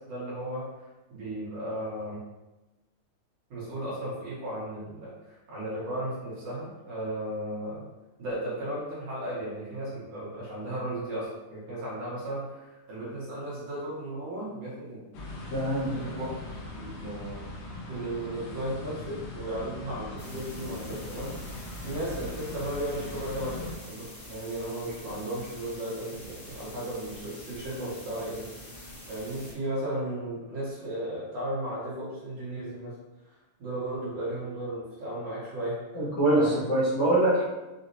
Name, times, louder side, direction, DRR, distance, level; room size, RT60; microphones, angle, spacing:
voice 1, 0.0-2.2 3.5-7.8 8.2-15.0 15.9-16.3 16.7-17.4 17.9-32.9 33.2-35.8 36.3-36.7, right 1 dB, 60° right, -9 dB, 2.2 m, -35 dB
sound 1, 15.1-23.7, left 2 dB, 90° left, 2.3 m, -40 dB
voice 2, 15.5-15.9 35.9-37.4, right 1 dB, 65° left, -9 dB, 1.7 m, -24 dB
sound 2, 20.2-29.5, left 1 dB, 50° left, 1.6 m, -46 dB
6.3 x 2.6 x 2.6 m, 1.1 s
omnidirectional pair, 3.8 m